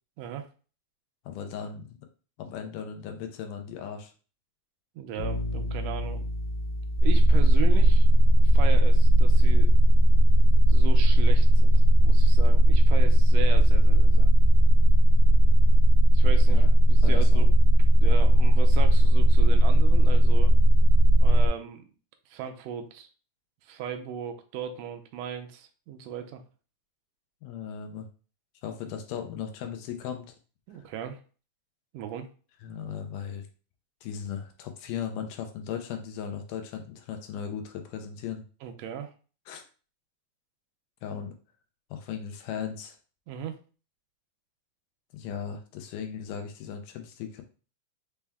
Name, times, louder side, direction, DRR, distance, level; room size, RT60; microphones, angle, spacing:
voice 1, 1.3-2.0 2.4-4.1 16.5-16.7 17.0-17.5 27.4-28.1 28.6-30.3 32.6-33.5 34.0-38.4 39.5-39.6 41.0-41.3 41.9-43.0 45.1-47.4, left 8 dB, 85° left, 5 dB, 2.2 m, -37 dB
voice 2, 4.9-6.3 7.0-8.1 8.4-9.7 10.7-14.3 16.1-17.5 18.0-20.5 21.2-21.8 22.3-23.1 23.6-26.4 30.7-31.2 31.9-32.3 38.6-39.1 43.3-43.6, right 8 dB, 80° right, 5 dB, 1.6 m, -37 dB
sound 1, 5.2-15.0, left 1 dB, 65° left, 1.9 m, -37 dB
sound 2, 7.0-21.5, right 1 dB, 55° right, 1.3 m, -16 dB
5.6 x 2.2 x 3.5 m, 0.37 s
omnidirectional pair, 3.6 m